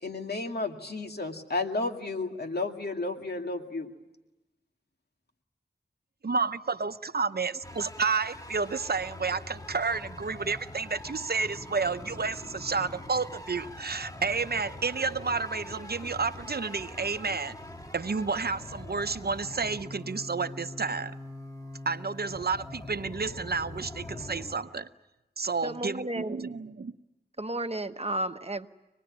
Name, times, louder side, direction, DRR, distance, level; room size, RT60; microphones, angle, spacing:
voice 1, 0.0-3.9, left 3 dB, 65° left, 3 dB, 2.3 m, -32 dB
voice 2, 6.2-17.6 17.9-21.1 21.9-24.9 25.4-26.9, right 4 dB, 65° right, 12 dB, 0.8 m, -31 dB
sound 1, 7.6-24.5, left 1 dB, 20° left, 2.0 m, -43 dB
voice 3, 25.6-26.5 27.4-28.7, right 1 dB, 35° right, 9 dB, 1.1 m, -33 dB
25.5 x 20.0 x 9.7 m, 1.0 s
wide cardioid pair, 45°, 18 cm